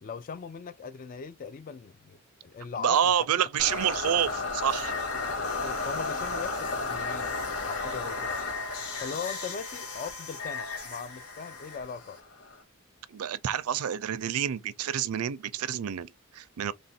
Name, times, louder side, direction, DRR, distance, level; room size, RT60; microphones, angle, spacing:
voice 1, 0.0-3.1 5.2-5.3 5.6-7.3 7.6-8.4 9.0-12.2, left 6 dB, 40° left, 0.3 m, -39 dB
voice 2, 2.8-4.9 13.1-16.7, right 9 dB, 80° right, 0.4 m, -28 dB
sound 1, 3.6-12.6, left 3 dB, 85° left, 1.5 m, -34 dB
3.3 x 2.5 x 4.2 m
head